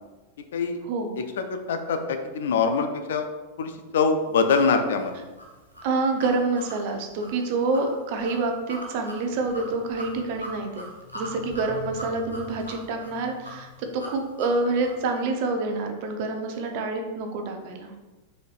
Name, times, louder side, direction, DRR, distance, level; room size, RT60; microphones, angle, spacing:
voice 1, 1.4-3.3 3.6-5.1, left 5 dB, 60° left, 6 dB, 0.5 m, -24 dB
sound 1, 5.0-15.0, left 1 dB, 85° left, 0.8 m, -41 dB
voice 2, 5.8-10.9 11.1-17.9, right 3 dB, 50° right, 4 dB, 0.7 m, -27 dB
4.7 x 4.2 x 2.4 m, 1.2 s
figure-of-eight pair, 90°, 0 cm